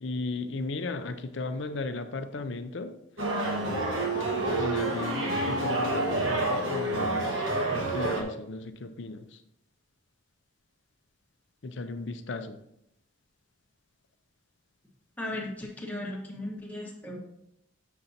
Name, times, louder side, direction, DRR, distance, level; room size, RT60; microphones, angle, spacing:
voice 1, 0.0-2.9 4.5-7.4 7.7-9.2 11.6-12.6, left 3 dB, 60° left, 9 dB, 0.6 m, -35 dB
sound 1, 3.2-8.2, right 2 dB, 75° right, 1.3 m, -28 dB
voice 2, 15.2-17.2, left 1 dB, 10° left, -2 dB, 1.1 m, -36 dB
7.3 x 6.8 x 2.7 m, 0.79 s
head